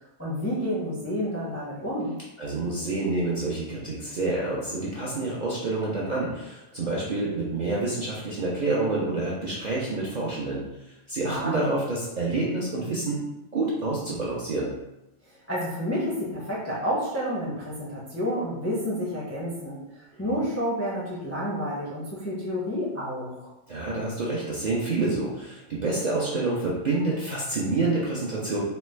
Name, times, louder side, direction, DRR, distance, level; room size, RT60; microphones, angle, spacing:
voice 1, 0.2-2.1 11.2-11.7 15.2-23.5, equal, 20° left, -7 dB, 0.4 m, -30 dB
voice 2, 2.4-10.6 11.1-13.2 13.5-14.7 23.7-28.6, right 2 dB, 55° right, -6 dB, 0.5 m, -28 dB
3.2 x 2.1 x 3.1 m, 0.93 s
omnidirectional pair, 1.3 m